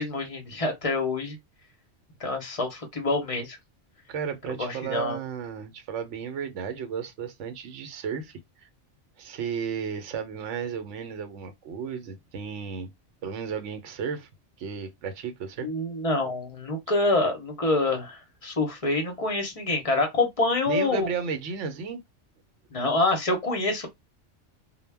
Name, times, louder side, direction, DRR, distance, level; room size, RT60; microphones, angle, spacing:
voice 1, 0.0-1.4 2.2-3.6 4.6-5.2 15.6-21.1 22.7-23.9, left 2 dB, 35° left, 0.6 m, -26 dB
voice 2, 4.1-8.4 9.2-12.9 13.2-14.3 14.6-15.7 20.7-22.0, right 6 dB, 75° right, 0.9 m, -33 dB
2.2 x 2.0 x 3.3 m
omnidirectional pair, 1.3 m